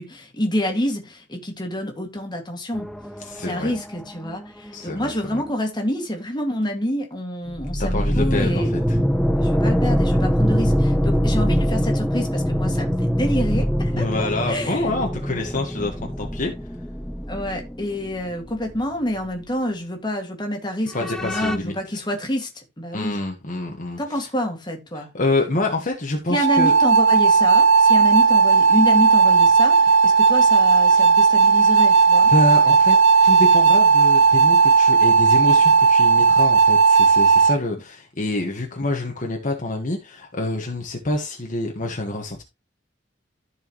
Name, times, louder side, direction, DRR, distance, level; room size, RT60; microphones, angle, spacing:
voice 1, 0.0-2.9 3.4-8.7 9.4-14.8 17.3-23.2 24.0-25.1 26.3-32.3, left 1 dB, 25° left, 2.1 m, -27 dB
sound 1, 2.7-5.5 7.5-18.9 19.2-19.3 21.0-21.6, equal, 5° left, 0.5 m, -23 dB
voice 2, 3.2-3.7 4.7-5.4 7.8-9.0 13.9-16.5 20.9-22.0 22.9-24.0 25.0-26.7 30.9-31.1 32.3-33.0 33.2-42.4, left 2 dB, 45° left, 1.5 m, -26 dB
sound 2, 26.3-37.6, right 5 dB, 75° right, 0.8 m, -15 dB
14.0 x 4.8 x 3.1 m
head